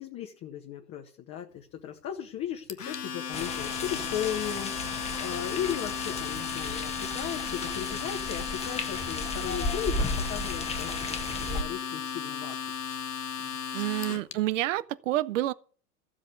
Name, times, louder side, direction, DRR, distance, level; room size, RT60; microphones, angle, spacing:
voice 1, 0.0-12.6 13.4-13.6 14.1-14.2, left 10 dB, 30° left, 1.6 m, -36 dB
Domestic sounds home sounds, 2.7-14.3, left 7 dB, 75° left, 1.3 m, -35 dB
sound 1, 3.3-11.6, left 2 dB, 15° left, 1.5 m, -34 dB
voice 2, 13.7-15.5, right 15 dB, 50° right, 1.0 m, -28 dB
15.0 x 7.6 x 8.1 m
figure-of-eight pair, 90°, 47 cm